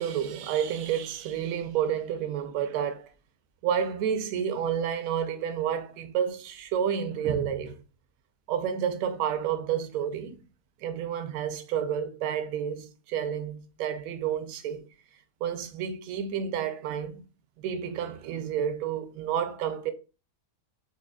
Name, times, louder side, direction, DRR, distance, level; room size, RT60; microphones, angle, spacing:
voice 1, 0.0-3.1 3.6-7.8 8.5-10.4 10.8-14.9 15.4-17.2 17.6-19.9, right 8 dB, 70° right, 0.9 m, -30 dB
4.8 x 2.1 x 2.2 m
omnidirectional pair, 1.7 m